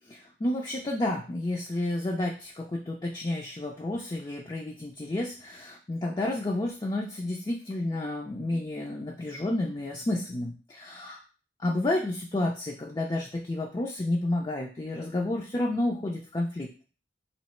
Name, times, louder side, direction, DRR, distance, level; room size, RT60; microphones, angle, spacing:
voice 1, 0.1-11.2 11.6-16.7, left 1 dB, 25° left, -1 dB, 0.4 m, -30 dB
3.1 x 2.8 x 4.3 m, 0.38 s
head